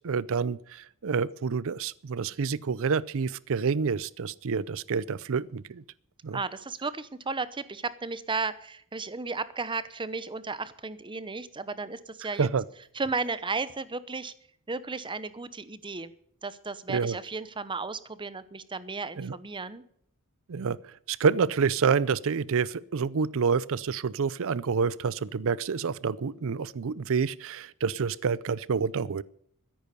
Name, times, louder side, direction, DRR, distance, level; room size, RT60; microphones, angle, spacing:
voice 1, 0.0-5.8 6.2-6.4 12.4-12.6 16.9-17.2 19.2-19.4 20.5-29.2, right 5 dB, 65° right, 21 dB, 0.5 m, -28 dB
voice 2, 6.3-12.5 12.9-14.3 14.7-16.1 16.4-19.8, right 4 dB, 20° right, 15 dB, 0.8 m, -34 dB
13.5 x 10.5 x 6.7 m, 0.67 s
head